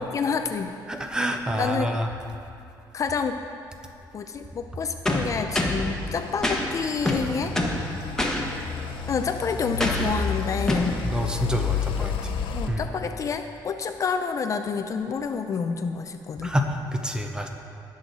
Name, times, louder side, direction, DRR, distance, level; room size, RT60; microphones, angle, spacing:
voice 1, 0.0-0.7 1.6-1.9 2.9-3.4 4.1-7.6 9.1-11.0 12.5-16.6, left 5 dB, 40° left, 7 dB, 0.5 m, -28 dB
voice 2, 0.9-2.1 11.0-12.3 12.7-12.8 16.4-16.7 16.9-17.5, equal, 10° right, 4 dB, 0.9 m, -27 dB
sound 1, 5.1-5.9 6.4-6.6 7.1-7.8 8.2-8.4 9.8-10.1 10.7-10.9, left 1 dB, 5° left, 1.3 m, -25 dB
sound 2, 5.7-12.7, left 6 dB, 85° left, 0.8 m, -31 dB
18.5 x 6.4 x 4.1 m, 2.6 s
cardioid pair, 125°, 8 cm